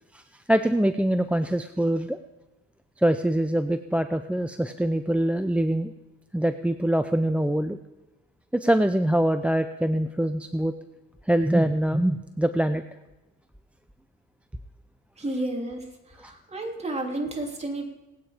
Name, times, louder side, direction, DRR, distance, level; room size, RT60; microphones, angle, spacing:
voice 1, 0.1-2.2 3.0-5.9 6.3-7.8 8.5-10.7 11.3-12.8 16.2-16.3, right 1 dB, 5° right, 10 dB, 0.5 m, -24 dB
voice 2, 15.2-15.9 16.2-17.8, right 2 dB, 20° right, 1 dB, 3.1 m, -31 dB
20.0 x 8.9 x 5.0 m, 1.1 s
cardioid pair, 90°, 30 cm